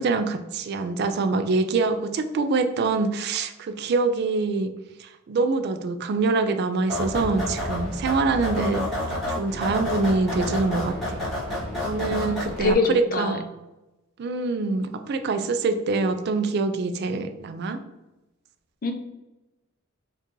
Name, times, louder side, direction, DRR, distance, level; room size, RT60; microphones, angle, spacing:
voice 1, 0.0-4.7 5.0-8.9 9.3-11.2 11.8-13.4 14.2-17.8, right 3 dB, 50° right, 9 dB, 0.3 m, -25 dB
sound 1, 6.9-12.7, left 1 dB, ahead, 1.4 m, -29 dB
voice 2, 12.6-13.4 18.8-18.9, left 3 dB, 40° left, 5 dB, 0.5 m, -24 dB
4.5 x 2.4 x 3.1 m, 1.0 s
head